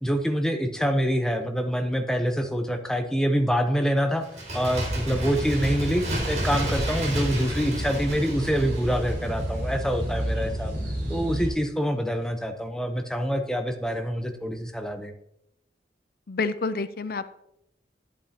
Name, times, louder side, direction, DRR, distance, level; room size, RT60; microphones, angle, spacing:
voice 1, 0.0-4.2 4.5-10.7 11.1-15.1, equal, 5° left, 5 dB, 0.7 m, -26 dB
Bird, 4.2-9.8 10.0-10.1, right 1 dB, 40° right, 2.2 m, -32 dB
sound 1, 4.8-11.5, equal, 80° right, 3.8 m, -31 dB
voice 2, 16.3-17.3, left 4 dB, 55° left, 12 dB, 0.5 m, -28 dB
11.0 x 8.3 x 2.9 m, 0.81 s
head